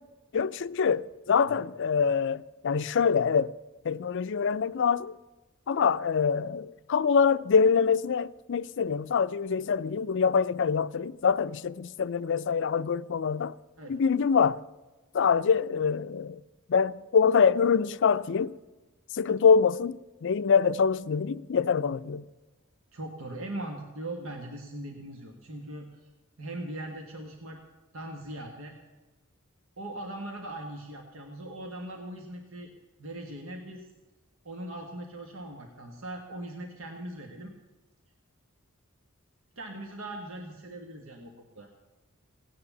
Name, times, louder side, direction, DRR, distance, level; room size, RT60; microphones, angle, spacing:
voice 1, 0.3-3.5 3.8-5.2 5.7-13.5 13.9-14.6 15.1-16.4 16.7-18.5 19.1-22.2, left 6 dB, 60° left, 0.4 m, -25 dB
voice 2, 22.9-26.1 26.4-27.6 27.9-28.7 29.8-32.7 33.0-33.9 34.4-37.5 39.5-41.7, right 1 dB, 70° right, 1.6 m, -40 dB
17.5 x 9.7 x 7.2 m
head